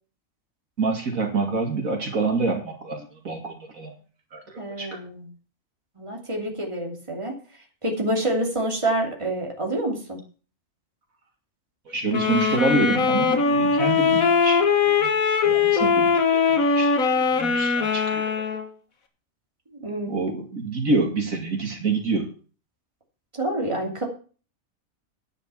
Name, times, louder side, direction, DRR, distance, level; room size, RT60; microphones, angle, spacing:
voice 1, 0.8-3.9 4.3-5.0 11.9-15.1 15.4-18.4 20.1-22.3, right 3 dB, 80° right, 3 dB, 2.8 m, -27 dB
voice 2, 4.6-5.3 6.0-7.4 7.8-10.2 19.8-20.2 23.3-24.1, right 1 dB, 20° right, 0 dB, 2.9 m, -27 dB
sound 1, 12.1-18.7, left 5 dB, 85° left, 2.0 m, -21 dB
10.0 x 9.9 x 5.7 m, 0.38 s
omnidirectional pair, 1.4 m